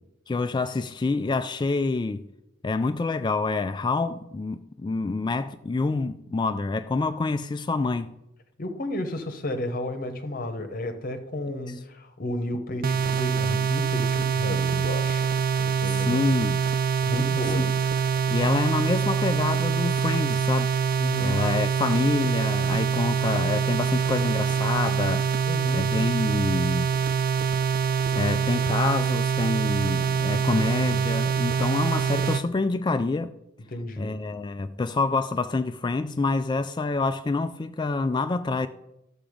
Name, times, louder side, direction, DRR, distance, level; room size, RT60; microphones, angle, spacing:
voice 1, 0.3-2.3 2.6-8.1 15.9-16.6 17.5-17.6 18.3-20.8 21.2-25.3 25.7-26.9 28.2-33.3 34.0-38.7, left 3 dB, 20° left, 0.3 m, -27 dB
voice 2, 8.6-16.3 17.1-17.7 21.0-21.4 25.4-25.9 30.3-31.0 33.7-34.2, left 1 dB, 45° left, 0.9 m, -33 dB
sound 1, 12.8-32.4, right 7 dB, 45° right, 0.5 m, -25 dB
12.0 x 7.1 x 5.0 m
head